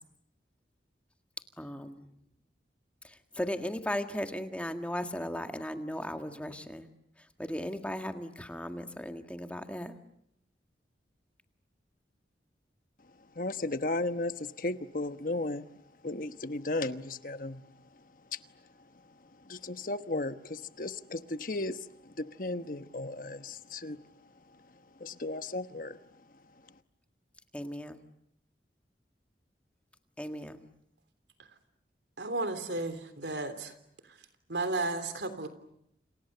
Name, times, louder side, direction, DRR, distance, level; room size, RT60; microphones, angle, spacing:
voice 1, 1.6-2.0 3.4-6.9 7.4-10.0 27.5-28.0 30.2-30.7, left 1 dB, 5° left, 6 dB, 1.8 m, -36 dB
voice 2, 13.4-15.7 16.0-17.6 18.3-18.4 19.5-24.0 25.0-26.0, left 2 dB, 50° left, 11 dB, 1.2 m, -35 dB
voice 3, 32.2-33.7 34.5-35.5, right 2 dB, 80° right, 10 dB, 3.4 m, -33 dB
29.5 x 28.5 x 6.8 m, 0.76 s
head